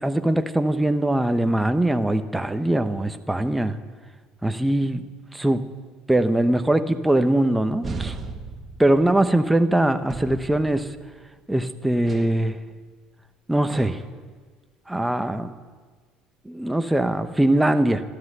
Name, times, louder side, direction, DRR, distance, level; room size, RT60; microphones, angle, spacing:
voice 1, 0.0-3.8 4.4-5.0 5.3-5.6 6.1-8.2 8.8-10.9 11.5-12.6 13.5-14.0 14.9-15.5 16.4-18.0, right 1 dB, 5° right, 8 dB, 1.0 m, -21 dB
sound 1, 7.8-9.5 10.1-11.3 12.0-12.4 13.7-14.2, right 3 dB, 25° right, 1.6 m, -36 dB
13.5 x 13.5 x 8.1 m, 1.5 s
cardioid pair, 115°, 0 cm